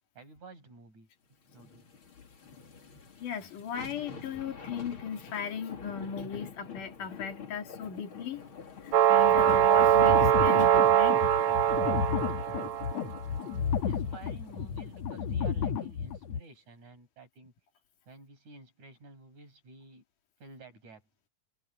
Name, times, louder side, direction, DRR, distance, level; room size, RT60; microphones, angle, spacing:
voice 1, 0.2-1.1 1.5-1.8 13.8-17.5 18.1-20.0 20.4-21.0, right 3 dB, 65° right, 7.6 m, -51 dB
sound 1, 1.5-15.9 16.3-16.4, left 6 dB, 40° left, 3.5 m, -48 dB
voice 2, 3.2-8.5 8.8-11.3, left 7 dB, 80° left, 3.7 m, -37 dB
sound 2, 8.9-13.0, right 10 dB, 80° right, 1.1 m, -22 dB
sound 3, 9.2-16.4, left 7 dB, 60° left, 2.5 m, -33 dB
omnidirectional pair, 3.6 m